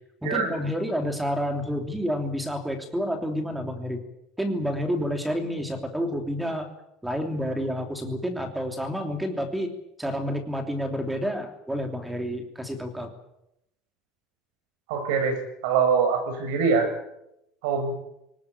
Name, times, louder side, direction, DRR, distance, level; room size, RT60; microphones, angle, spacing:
voice 1, 0.2-4.0 4.4-6.7 7.0-9.7 10.0-13.1, equal, 5° right, 5 dB, 3.0 m, -29 dB
voice 2, 14.9-15.4 15.6-16.9 17.6-17.9, right 5 dB, 75° right, 7 dB, 7.5 m, -23 dB
23.5 x 19.5 x 8.4 m, 0.83 s
cardioid pair, 165°, 0 cm